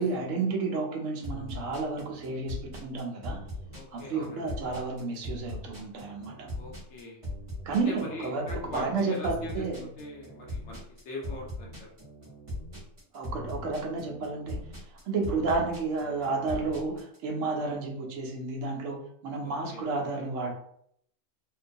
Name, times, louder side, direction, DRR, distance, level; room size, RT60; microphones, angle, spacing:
voice 1, 0.0-3.4 3.9-6.5 7.6-9.9 13.1-14.7 15.1-20.5, right 3 dB, 70° right, 0 dB, 0.9 m, -31 dB
sound 1, 1.2-17.2, left 1 dB, 30° right, 0.8 m, -40 dB
voice 2, 3.7-4.4 6.6-7.2 7.8-9.6 10.0-10.8 11.1-11.9 19.4-19.8, left 1 dB, 65° left, -1 dB, 0.8 m, -41 dB
2.5 x 2.2 x 2.5 m, 0.68 s
omnidirectional pair, 1.4 m